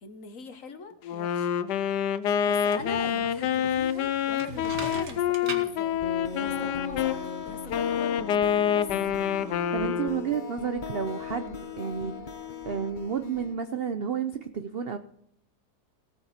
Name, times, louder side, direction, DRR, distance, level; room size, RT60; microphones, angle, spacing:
voice 1, 0.0-1.5 2.5-6.0 6.3-8.2 8.7-8.9, left 5 dB, 55° left, 9 dB, 1.6 m, -41 dB
Wind instrument woodwind instrument, 1.0-7.2 7.7-10.3, left 9 dB, 90° left, 1.3 m, -27 dB
sound 1, 2.5-7.9, right 3 dB, 75° right, 2.3 m, -42 dB
sound 2, 6.0-13.6, left 5 dB, 40° left, 0.8 m, -38 dB
voice 2, 9.3-12.2 12.6-15.0, right 7 dB, 50° right, 9 dB, 0.7 m, -31 dB
18.0 x 8.1 x 4.3 m, 0.70 s
omnidirectional pair, 1.8 m